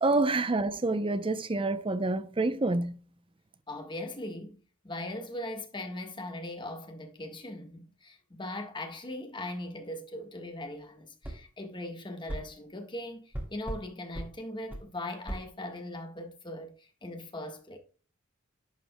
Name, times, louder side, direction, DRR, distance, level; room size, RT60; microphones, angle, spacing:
voice 1, 0.0-2.9, right 2 dB, 25° right, 0.7 m, -27 dB
voice 2, 3.7-17.8, left 1 dB, 25° left, 1.5 m, -40 dB
sound 1, 11.2-11.4 12.3-12.5 13.3-13.8 14.1-14.3 14.7-14.9 15.3-15.4, right 1 dB, 10° right, 2.9 m, -37 dB
11.5 x 5.4 x 2.3 m
head